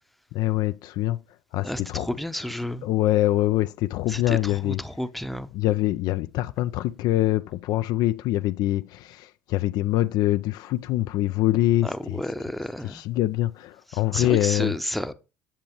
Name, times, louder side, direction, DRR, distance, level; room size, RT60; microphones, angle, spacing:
voice 1, 0.3-1.2 1.5-2.1 2.8-4.8 5.5-12.2 12.8-14.7, left 15 dB, 55° left, 0.4 m, -24 dB
voice 2, 1.6-2.8 4.1-5.5 11.8-13.0 13.9-15.1, left 1 dB, ahead, 0.7 m, -31 dB
8.7 x 7.7 x 2.9 m
hypercardioid pair, 60°, 8 cm